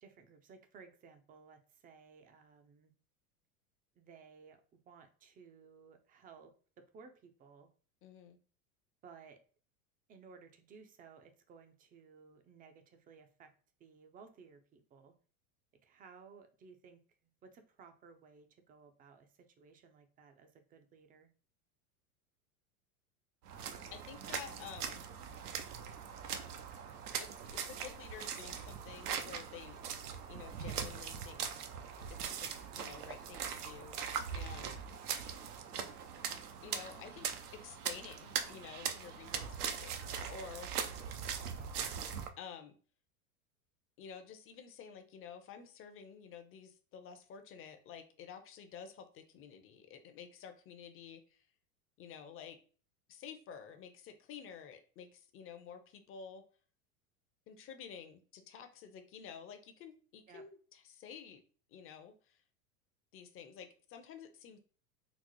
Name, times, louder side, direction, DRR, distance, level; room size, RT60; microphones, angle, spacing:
voice 1, 0.0-2.9 4.0-7.7 9.0-9.4 10.1-13.5 13.8-15.1 15.8-17.0 17.4-21.3 60.3-60.4, right 5 dB, 20° right, 7 dB, 0.4 m, -58 dB
voice 2, 8.0-8.4 23.9-25.0 27.2-29.8 30.3-31.4 32.1-34.0 34.3-34.8 36.6-40.7 42.4-42.7 44.0-51.4 52.0-52.6 53.1-56.4 57.5-61.4 61.7-62.4 63.1-64.6, left 7 dB, 30° left, 7 dB, 0.6 m, -51 dB
sound 1, 23.5-42.3, right 7 dB, 90° right, 0.6 m, -41 dB
3.9 x 2.0 x 3.0 m, 0.40 s
hypercardioid pair, 105°, 44 cm